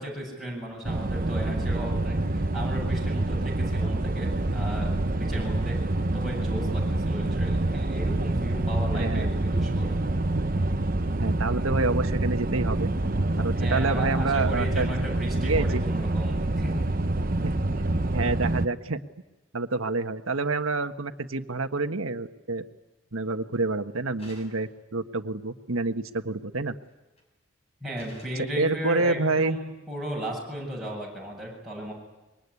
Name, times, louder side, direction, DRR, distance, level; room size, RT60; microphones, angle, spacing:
voice 1, 0.0-5.8 6.1-9.9 13.5-16.8 27.8-31.9, right 1 dB, ahead, -4 dB, 7.8 m, -35 dB
sound 1, 0.9-18.7, right 2 dB, 40° right, 0.9 m, -26 dB
voice 2, 8.9-9.3 11.2-12.9 13.4-14.9 15.3-15.8 17.4-19.0 19.5-22.6 23.1-26.8 28.5-29.6, right 3 dB, 80° right, 8 dB, 1.4 m, -28 dB
sound 2, 24.2-24.8 26.9-27.2 27.9-28.5, equal, 30° left, 6.3 m, -51 dB
25.5 x 23.0 x 9.7 m, 1.1 s
head